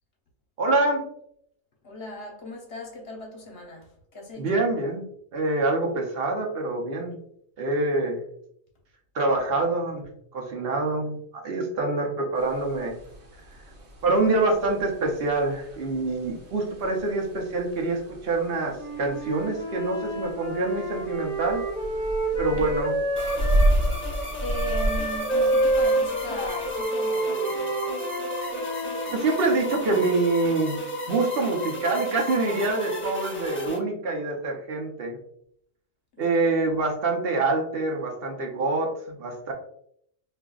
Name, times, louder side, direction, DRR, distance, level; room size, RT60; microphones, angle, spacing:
voice 1, 0.6-1.0 4.4-5.0 5.3-7.2 7.6-8.2 9.1-10.0 10.3-13.0 14.0-21.6 22.4-23.0 29.1-30.8 31.1-35.2 36.2-39.5, right 3 dB, 65° right, 0.9 m, -26 dB
voice 2, 1.8-4.7 22.3-22.7 24.4-27.8 36.1-36.7, left 1 dB, 65° left, 1.0 m, -38 dB
sound 1, 12.3-26.8, right 1 dB, 85° right, 1.2 m, -32 dB
Wind instrument woodwind instrument, 18.7-23.8 24.5-29.4, right 2 dB, 40° left, 1.0 m, -28 dB
sound 2, 23.2-33.8, left 1 dB, 15° left, 0.6 m, -34 dB
4.8 x 2.5 x 2.3 m
omnidirectional pair, 1.1 m